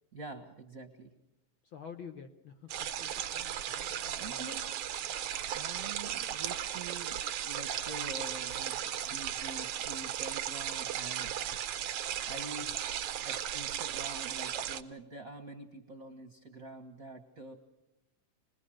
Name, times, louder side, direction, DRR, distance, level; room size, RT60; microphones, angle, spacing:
voice 1, 0.1-1.1 4.2-4.7 5.5-7.2 7.4-11.4 12.2-12.8 13.2-17.5, right 2 dB, 45° right, 4 dB, 1.1 m, -46 dB
voice 2, 1.6-2.7 3.0-4.5 12.6-12.8, left 7 dB, 75° left, 7 dB, 1.1 m, -49 dB
sound 1, 2.7-14.8, right 10 dB, 70° right, 1.5 m, -36 dB
27.0 x 20.5 x 6.4 m, 0.87 s
omnidirectional pair, 3.8 m